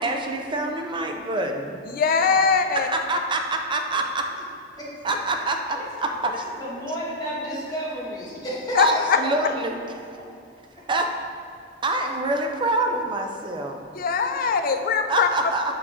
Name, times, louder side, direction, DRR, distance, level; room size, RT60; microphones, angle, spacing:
voice 1, 0.0-1.8 2.7-4.3 5.0-6.3 8.8-9.7 10.9-11.1 11.8-13.8 15.1-15.6, right 2 dB, 25° right, 0.5 m, -26 dB
voice 2, 1.9-2.9 8.7-9.2 13.9-15.3, left 5 dB, 50° left, 0.4 m, -21 dB
voice 3, 4.8-5.2 5.7-5.9 6.3-9.3 14.2-14.3, equal, 20° left, 1.5 m, -32 dB
6.4 x 4.9 x 3.6 m
head